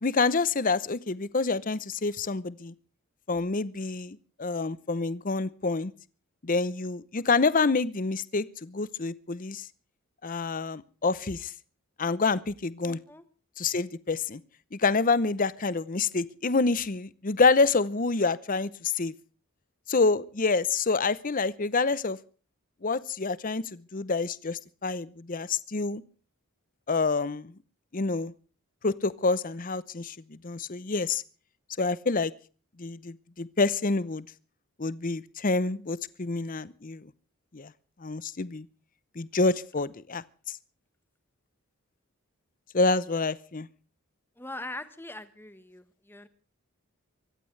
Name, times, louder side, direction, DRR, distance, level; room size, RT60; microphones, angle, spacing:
voice 1, 0.0-2.7 3.3-5.9 6.4-9.6 10.2-11.5 12.0-13.0 13.6-14.4 14.7-19.1 19.9-22.2 22.8-26.0 26.9-27.5 27.9-28.3 28.8-31.2 31.8-32.3 32.8-34.3 34.8-37.1 37.5-37.7 38.0-38.7 39.2-40.2 42.7-43.7, left 3 dB, 40° left, 18 dB, 0.7 m, -27 dB
voice 2, 12.8-13.2 44.4-46.3, left 2 dB, 10° left, 12 dB, 1.3 m, -41 dB
24.5 x 15.5 x 3.3 m, 0.38 s
head